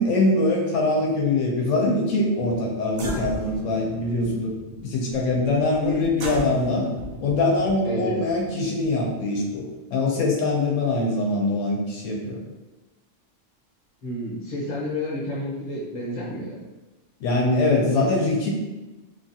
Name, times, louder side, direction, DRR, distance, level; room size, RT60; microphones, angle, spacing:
voice 1, 0.0-4.5 4.8-6.9 7.2-9.6 9.9-12.4 17.2-18.5, left 2 dB, 80° left, -1 dB, 0.9 m, -23 dB
sound 1, 2.5-2.6 2.9-9.8, right 1 dB, 60° right, 0.7 m, -36 dB
voice 2, 7.8-8.2 14.0-16.6 18.0-18.1, left 1 dB, 40° left, -5 dB, 0.8 m, -30 dB
2.7 x 2.3 x 2.6 m, 1.1 s
omnidirectional pair, 1.3 m